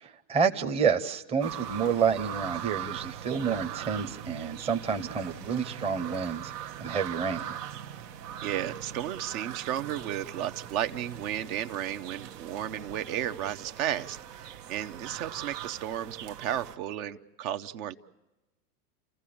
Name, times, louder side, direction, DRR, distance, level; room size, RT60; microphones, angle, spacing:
voice 1, 0.0-7.4, right 6 dB, 15° right, 6 dB, 0.7 m, -29 dB
sound 1, 1.4-16.8, right 10 dB, 85° right, 1.2 m, -41 dB
voice 2, 8.4-18.0, right 11 dB, 60° right, 9 dB, 0.9 m, -33 dB
30.0 x 15.0 x 8.6 m, 1.1 s
hypercardioid pair, 120°, 48 cm